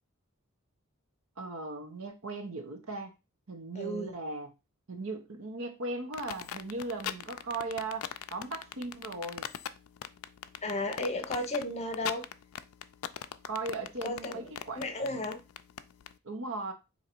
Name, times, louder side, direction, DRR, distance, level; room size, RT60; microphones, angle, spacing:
voice 1, 1.4-3.1 3.5-4.5 4.9-9.5 13.5-15.2 16.2-16.7, right 3 dB, 75° right, 0.9 m, -38 dB
voice 2, 3.7-4.1 10.6-12.2 14.0-15.4, left 2 dB, 30° left, 0.8 m, -34 dB
sound 1, 6.1-16.1, left 10 dB, 90° left, 0.4 m, -39 dB
3.8 x 2.9 x 4.4 m
head